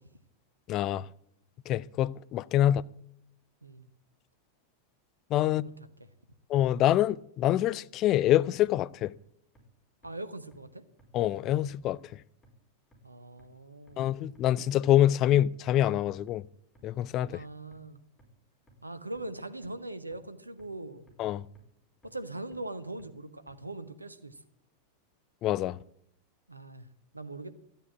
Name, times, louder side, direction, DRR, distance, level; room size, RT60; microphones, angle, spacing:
voice 1, 0.7-1.1 1.7-2.8 5.3-5.6 6.5-9.1 11.1-12.0 14.0-16.4 16.8-17.4 21.2-21.4 25.4-25.8, left 12 dB, 35° left, 0.4 m, -25 dB
sound 1, 8.6-8.7 9.1-9.2 9.6-9.7 10.0-10.1 10.5-10.6 11.0-11.1 11.5-11.6 12.0-12.1 12.4-12.5 12.9-13.0 13.4-13.5 13.9-14.0 14.4-14.5 14.8-14.9 15.3-15.4 15.8-15.9 16.3-16.4 16.8-16.9 17.2-17.3 17.7-17.8 18.2-18.3 18.7-18.8 19.2-19.3 19.6-19.7 20.1-20.2 20.6-20.7 21.1-21.2 21.6-21.7 22.0-22.1 22.5-22.6 23.0-23.1 23.5-23.6, right 2 dB, 10° left, 4.7 m, -60 dB
voice 2, 10.0-10.8 13.0-14.1 17.3-18.0 18.8-21.1 22.0-24.4 26.5-26.9 27.1-27.5, right 2 dB, 85° right, 1.2 m, -41 dB
13.5 x 9.0 x 8.8 m
figure-of-eight pair, 90°, 0 cm